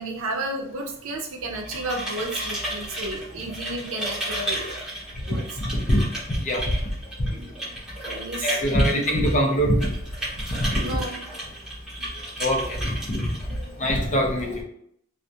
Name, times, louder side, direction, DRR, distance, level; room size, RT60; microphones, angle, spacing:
voice 1, 0.0-4.9 5.2-5.4 7.3-7.6 8.1-9.0 10.8-11.2 11.9-12.3, right 2 dB, 90° right, 1 dB, 0.5 m, -33 dB
sound 1, 1.4-14.1, right 1 dB, 5° right, 0.8 m, -34 dB
voice 2, 6.3-6.8 7.2-7.3 8.4-9.9 10.6-10.8 12.4-13.2 13.5-14.6, equal, 35° left, 1 dB, 0.5 m, -23 dB
2.3 x 2.1 x 2.6 m, 0.72 s
head